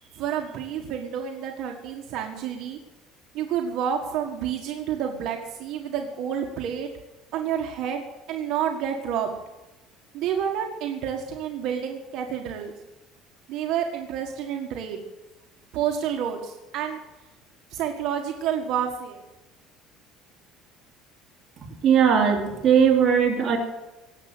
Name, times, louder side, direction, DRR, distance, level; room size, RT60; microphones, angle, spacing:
voice 1, 0.1-2.8 3.3-6.9 7.3-8.0 8.3-9.3 10.1-12.7 13.5-15.0 15.7-17.0 17.7-19.2, right 8 dB, 55° right, 2 dB, 1.7 m, -29 dB
voice 2, 21.8-23.6, right 7 dB, 35° right, 1 dB, 2.9 m, -19 dB
18.5 x 7.8 x 8.0 m, 1.0 s
cardioid pair, 155°, 0 cm